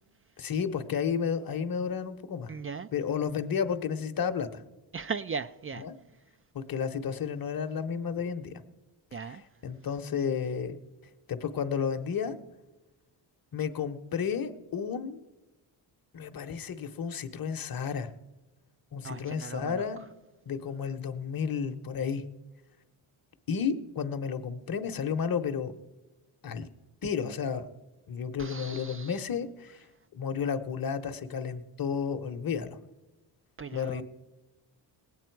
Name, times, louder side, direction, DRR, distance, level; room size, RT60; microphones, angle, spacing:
voice 1, 0.4-2.5 2.9-4.6 5.8-5.9 6.5-8.6 9.3-10.8 11.3-12.4 13.5-15.2 16.1-18.1 18.9-20.0 20.5-22.2 23.5-25.7 26.4-26.7 27.0-27.7 28.1-29.8 30.1-32.8 33.7-34.0, left 6 dB, 45° left, 0.9 m, -32 dB
voice 2, 2.5-2.9 4.9-5.9 9.1-9.4 19.0-19.8 28.4-29.2 33.6-34.0, right 5 dB, 30° right, 0.3 m, -38 dB
19.0 x 8.7 x 4.6 m
cardioid pair, 65°, 50 cm